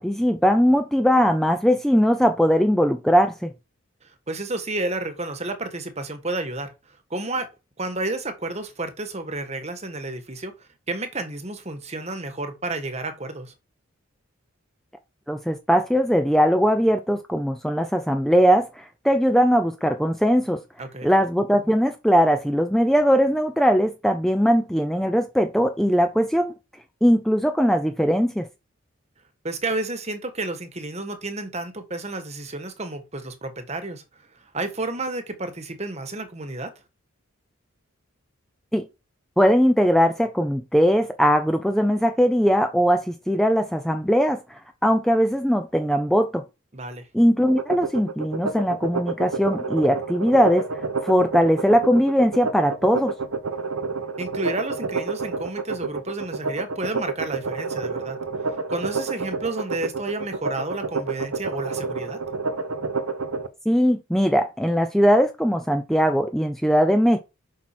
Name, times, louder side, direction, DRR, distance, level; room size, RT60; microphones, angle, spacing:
voice 1, 0.0-3.5 15.3-20.6 21.0-26.5 27.0-28.5 38.7-38.8 39.4-46.4 47.1-53.1 63.7-67.2, equal, ahead, 0.6 m, -20 dB
voice 2, 4.0-7.5 7.8-13.5 20.8-21.1 29.4-34.0 34.5-36.7 46.7-47.1 54.2-58.2 58.4-62.2, right 2 dB, 30° right, 1.4 m, -31 dB
sound 1, 47.5-63.5, right 4 dB, 85° right, 1.0 m, -29 dB
7.3 x 6.0 x 4.5 m
head